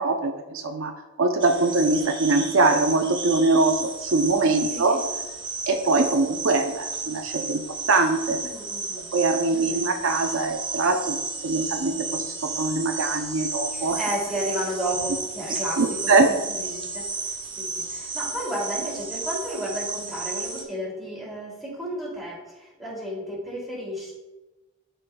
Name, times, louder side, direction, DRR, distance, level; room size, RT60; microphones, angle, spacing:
voice 1, 0.0-5.0 5.7-8.4 9.1-14.0 15.5-16.4, right 3 dB, 65° right, 5 dB, 0.6 m, -23 dB
Amazon jungle night crickets awesome loop, 1.4-20.6, right 4 dB, 20° right, 0.9 m, -33 dB
voice 2, 4.7-5.1 8.3-9.1 9.5-10.0 13.7-24.1, equal, ahead, -6 dB, 2.5 m, -33 dB
12.0 x 5.1 x 2.3 m, 1.1 s
head